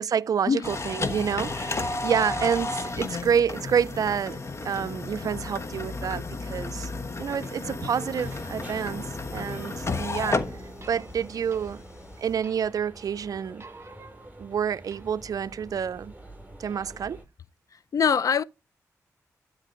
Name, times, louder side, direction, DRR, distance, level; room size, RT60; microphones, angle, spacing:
voice 1, 0.0-4.4 4.6-6.9 7.2-9.1 9.3-10.4 10.9-11.8 12.2-13.7 14.4-16.1 16.6-17.2, right 7 dB, 65° right, 0.4 m, -28 dB
sound 1, 0.6-12.3, left 3 dB, 45° left, 1.2 m, -33 dB
sound 2, 1.5-2.4 7.4-9.9 10.8-12.0 12.4-13.0 13.3-15.5, right 3 dB, 40° right, 1.2 m, -50 dB
sound 3, 8.2-17.2, right 1 dB, 25° right, 6.7 m, -46 dB
voice 2, 17.7-18.4, left 6 dB, 60° left, 0.5 m, -24 dB
12.5 x 4.6 x 4.2 m
cardioid pair, 45°, 6 cm